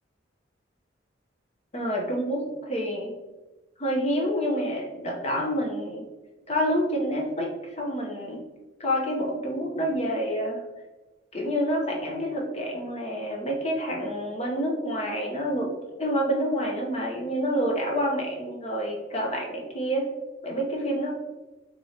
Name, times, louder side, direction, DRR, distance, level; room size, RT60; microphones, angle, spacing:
voice 1, 1.7-3.1 3.8-6.0 6.5-8.4 8.8-10.6 11.3-15.7 16.0-20.1 20.4-21.1, equal, 35° left, -1 dB, 0.7 m, -28 dB
4.4 x 3.0 x 2.7 m, 1.1 s
head